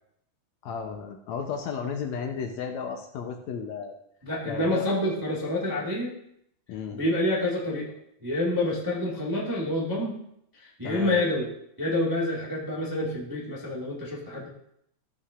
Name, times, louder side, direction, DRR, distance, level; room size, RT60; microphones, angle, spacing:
voice 1, 0.6-4.0 4.4-4.8 6.7-7.0 10.8-11.2, left 6 dB, 70° left, 4 dB, 1.8 m, -34 dB
voice 2, 4.2-6.1 6.9-7.9 8.2-10.2 10.5-11.5 11.8-14.5, left 1 dB, 20° right, -5 dB, 0.5 m, -28 dB
14.5 x 7.0 x 2.5 m, 0.72 s
omnidirectional pair, 3.7 m